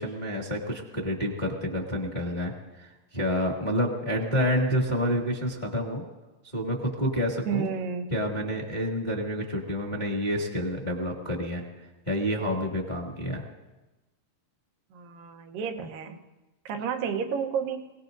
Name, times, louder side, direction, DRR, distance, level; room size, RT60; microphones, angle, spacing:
voice 1, 0.0-2.5 2.8-6.0 6.5-7.6 8.1-11.6 12.1-13.4, equal, 20° left, -2 dB, 1.3 m, -28 dB
voice 2, 7.5-8.1 14.9-16.2 16.7-17.9, right 6 dB, 85° right, 4 dB, 2.7 m, -31 dB
27.5 x 18.0 x 2.6 m, 1.1 s
omnidirectional pair, 3.9 m